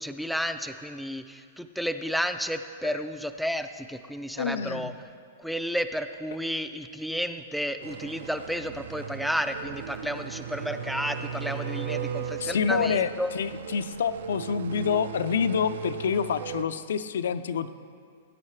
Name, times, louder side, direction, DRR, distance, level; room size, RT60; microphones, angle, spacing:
voice 1, 0.0-4.9 5.4-13.3, equal, ahead, 8 dB, 0.3 m, -32 dB
voice 2, 4.4-4.9 12.4-13.1 13.3-17.7, left 6 dB, 80° left, 12 dB, 0.5 m, -27 dB
sound 1, 7.8-16.6, right 9 dB, 85° right, 0.6 m, -39 dB
Bowed string instrument, 9.3-12.4, right 6 dB, 65° right, 1.5 m, -37 dB
18.5 x 9.6 x 3.3 m, 2.1 s
supercardioid pair, 175°, 0 cm